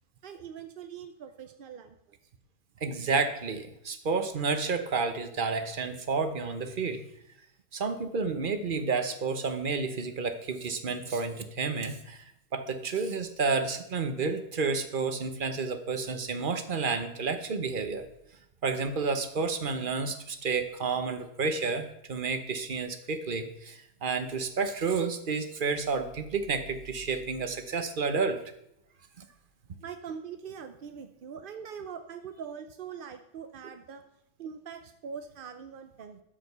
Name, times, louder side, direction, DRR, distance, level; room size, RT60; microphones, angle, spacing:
voice 1, 0.2-2.2 29.8-34.0 34.4-36.2, right 7 dB, 55° right, 7 dB, 0.6 m, -42 dB
voice 2, 2.8-7.0 7.7-12.2 12.5-18.1 18.6-28.4 29.2-29.3, right 4 dB, 40° right, 8 dB, 1.0 m, -30 dB
12.5 x 5.2 x 6.7 m, 0.78 s
omnidirectional pair, 1.7 m